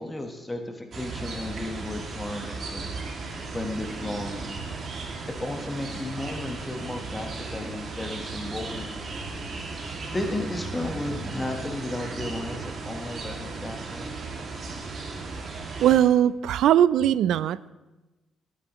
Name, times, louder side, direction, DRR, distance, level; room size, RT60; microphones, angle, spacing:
voice 1, 0.0-2.9 3.5-4.6 5.3-8.9 10.1-14.1, left 1 dB, 15° left, 4 dB, 1.2 m, -34 dB
sound 1, 0.9-16.0, right 3 dB, 50° right, 2.1 m, -36 dB
voice 2, 15.8-17.7, right 11 dB, 80° right, 18 dB, 0.3 m, -20 dB
18.5 x 9.1 x 3.0 m, 1.1 s
cardioid pair, 90°, 0 cm